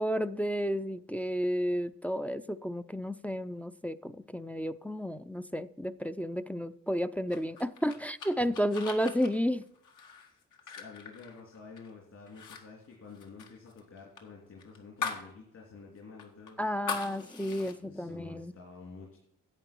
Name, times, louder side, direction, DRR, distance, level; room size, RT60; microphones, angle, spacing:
voice 1, 0.0-9.6 16.6-18.5, equal, 5° left, 0.4 m, -32 dB
sound 1, 7.3-11.9 12.3-12.6 12.9-15.3 15.7-15.8 16.2-17.7, left 5 dB, 80° left, 1.8 m, -41 dB
voice 2, 10.2-16.7 17.7-19.2, left 4 dB, 55° left, 3.1 m, -50 dB
10.5 x 8.1 x 4.5 m
cardioid pair, 90°, 30 cm